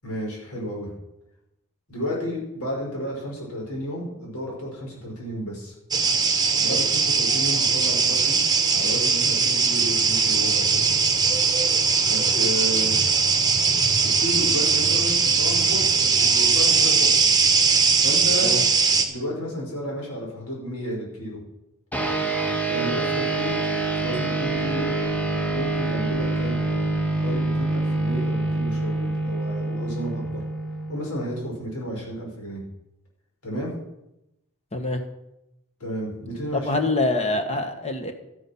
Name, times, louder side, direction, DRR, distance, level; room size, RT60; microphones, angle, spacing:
voice 1, 0.0-0.9 1.9-5.7 6.6-8.4 8.7-10.9 12.0-13.0 14.0-17.3 18.0-18.5 19.1-21.4 22.7-24.9 25.5-26.6 27.2-30.4 30.9-32.6 33.4-33.7 35.8-36.8, equal, 75° left, -2 dB, 5.8 m, -32 dB
sound 1, 5.9-19.0, right 5 dB, 20° right, 1.3 m, -20 dB
sound 2, 21.9-31.7, right 2 dB, 5° left, 1.7 m, -26 dB
voice 2, 34.7-35.0 36.5-38.1, left 2 dB, 30° left, 7 dB, 1.5 m, -25 dB
13.0 x 9.4 x 6.1 m, 0.88 s
head